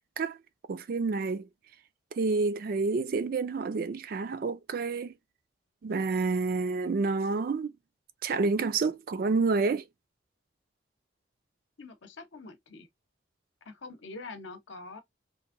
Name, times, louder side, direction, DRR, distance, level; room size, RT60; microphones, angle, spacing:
voice 1, 0.7-1.5 2.1-5.1 5.8-7.7 8.2-9.8, right 4 dB, 50° right, 0.3 m, -28 dB
voice 2, 11.8-12.9 13.7-15.0, left 3 dB, 75° left, 0.7 m, -44 dB
2.9 x 2.6 x 2.4 m
head